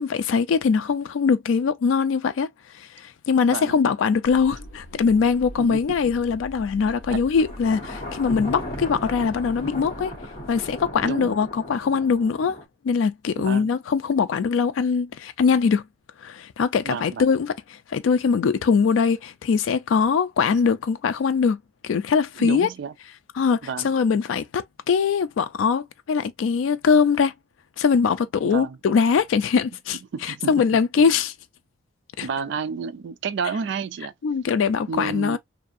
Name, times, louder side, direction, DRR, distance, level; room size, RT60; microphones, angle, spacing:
voice 1, 0.0-2.5 2.7-10.1 10.5-12.6 12.8-15.8 16.2-17.5 17.9-22.7 23.4-27.3 27.8-31.3 32.2-32.3 34.2-35.4, left 5 dB, 75° left, 0.3 m, -22 dB
sound 1, 4.2-11.7, equal, 45° left, 0.9 m, -42 dB
voice 2, 5.6-6.0 7.1-7.2 11.0-11.3 13.4-13.7 16.8-17.3 22.4-22.9 23.6-23.9 28.4-28.8 30.1-30.5 31.0-31.1 32.2-34.1 34.9-35.4, right 6 dB, 60° right, 0.3 m, -30 dB
Thunder, 7.4-12.6, equal, 30° left, 1.2 m, -36 dB
2.7 x 2.4 x 2.5 m
head